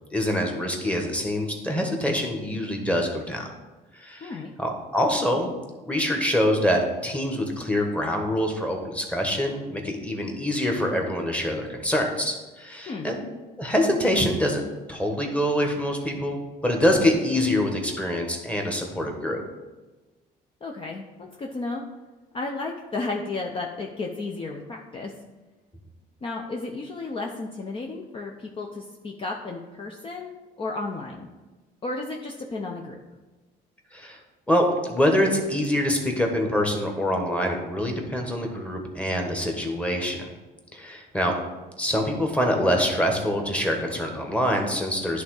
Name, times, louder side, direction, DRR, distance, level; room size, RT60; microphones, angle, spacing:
voice 1, 0.1-3.4 4.0-5.5 5.8-13.2 13.6-14.6 14.9-19.4 33.9-34.2 34.5-40.3 40.7-41.3 41.8-45.2, equal, 5° left, 2 dB, 1.4 m, -25 dB
voice 2, 20.6-21.8 22.3-25.1 26.2-31.3 31.8-33.0, left 3 dB, 30° left, 1 dB, 0.7 m, -33 dB
10.5 x 3.6 x 4.8 m, 1.2 s
cardioid pair, 110°, 17 cm